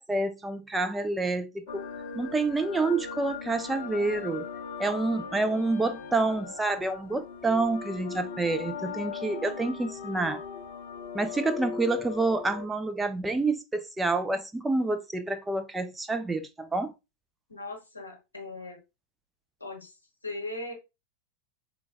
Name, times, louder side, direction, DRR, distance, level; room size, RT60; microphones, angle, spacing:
voice 1, 0.0-1.9 2.1-4.5 4.8-10.4 11.1-16.9, right 3 dB, 10° right, 0.3 m, -28 dB
sound 1, 1.7-12.7, left 6 dB, 55° left, 0.5 m, -39 dB
voice 2, 17.5-18.8 19.6-19.9 20.2-20.7, left 2 dB, 80° left, 0.9 m, -38 dB
4.3 x 2.2 x 2.5 m
figure-of-eight pair, 90°, 0 cm